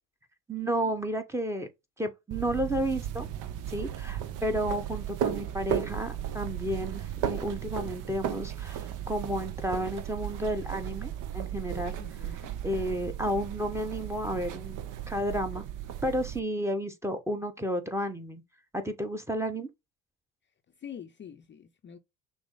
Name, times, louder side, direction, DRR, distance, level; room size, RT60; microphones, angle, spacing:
voice 1, 0.5-1.7 2.0-3.3 3.7-12.0 12.6-15.6 16.0-18.4 18.7-19.7, equal, 5° right, 1.0 m, -32 dB
sound 1, 2.3-16.4, right 10 dB, 55° right, 0.7 m, -35 dB
voice 2, 12.0-12.5 20.8-22.0, left 8 dB, 30° left, 0.6 m, -45 dB
6.0 x 2.1 x 3.8 m
hypercardioid pair, 55°, 37 cm